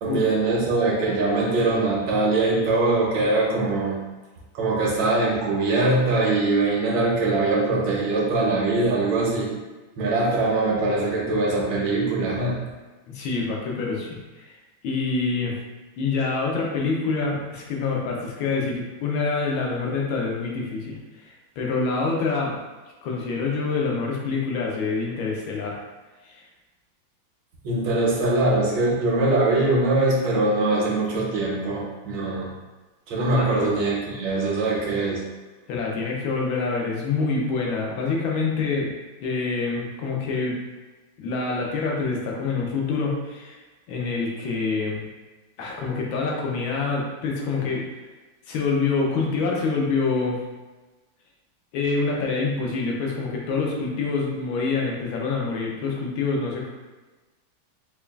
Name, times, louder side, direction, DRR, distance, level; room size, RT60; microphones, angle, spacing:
voice 1, 0.0-4.0 4.5-9.5 10.0-12.6 27.6-32.5 33.1-35.2, right 2 dB, 70° right, -4 dB, 1.5 m, -22 dB
voice 2, 13.1-14.6 14.8-15.6 16.0-21.0 21.6-22.6 23.0-25.8 26.2-26.4 33.3-33.7 35.7-38.9 39.2-40.6 41.2-43.6 43.9-45.0 45.6-47.8 48.5-50.4 51.7-56.7, left 4 dB, 80° left, -2 dB, 1.5 m, -26 dB
5.2 x 2.3 x 2.3 m, 1.2 s
omnidirectional pair, 2.2 m